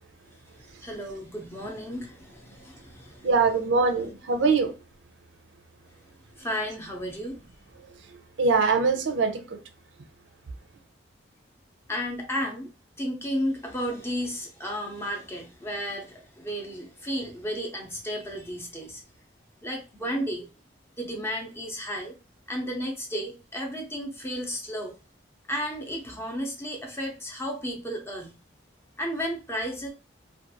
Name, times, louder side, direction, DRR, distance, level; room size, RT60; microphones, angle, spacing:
voice 1, 0.6-3.3 6.4-7.4 11.9-12.7 13.0-19.0 19.6-20.5 20.9-22.2 22.5-24.9 25.5-28.4 29.0-29.9, equal, 15° left, 0.6 m, -33 dB
voice 2, 3.2-4.8 7.9-9.6, right 4 dB, 80° right, 0.5 m, -23 dB
2.5 x 2.3 x 2.7 m
head